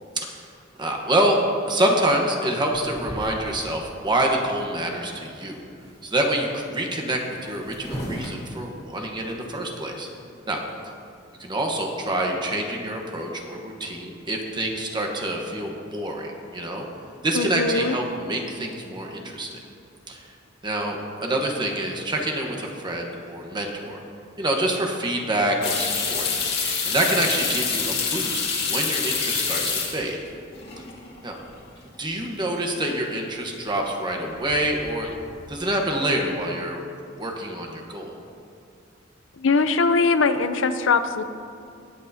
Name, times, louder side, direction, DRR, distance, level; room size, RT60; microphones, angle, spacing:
voice 1, 0.8-1.4 1.7-5.6 6.0-10.1 10.5-10.6 11.4-16.8 17.2-19.6 20.1-20.3 20.6-24.0 24.4-26.3 26.8-30.2 31.2-31.4 32.0-35.1 35.5-36.8 37.2-38.1, right 1 dB, 25° right, 1 dB, 1.1 m, -26 dB
sound 1, 2.7-3.8 4.4-4.5 4.7-5.2 5.4-6.1 7.0-7.1 7.3-9.3, equal, 35° left, 2.2 m, -37 dB
voice 2, 17.3-18.0 39.4-41.2, left 4 dB, 80° left, 10 dB, 0.6 m, -21 dB
sound 2, 25.6-30.3 30.6-31.2 31.5-31.6 34.3-34.7 35.0-35.5, left 5 dB, 55° left, 2.1 m, -26 dB
20.5 x 8.2 x 2.8 m, 2.4 s
head